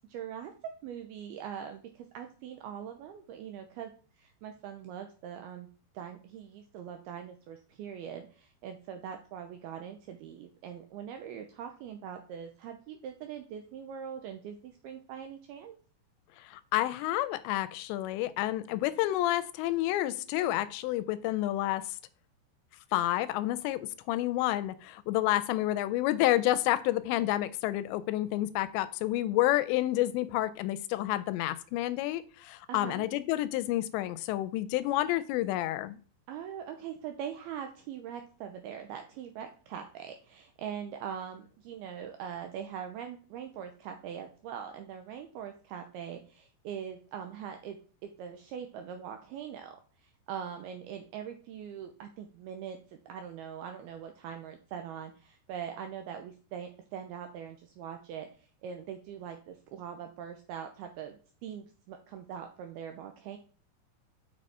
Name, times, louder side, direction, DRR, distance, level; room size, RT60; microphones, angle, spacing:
voice 1, 0.1-3.9 4.2-5.7 5.9-15.7 32.7-33.1 36.3-47.8 48.0-49.8 50.0-52.8 53.1-63.4, right 8 dB, 90° right, 6 dB, 2.2 m, -42 dB
voice 2, 16.4-22.0 22.9-36.0, left 15 dB, 85° left, 14 dB, 2.7 m, -29 dB
6.8 x 6.4 x 4.2 m, 0.40 s
omnidirectional pair, 5.2 m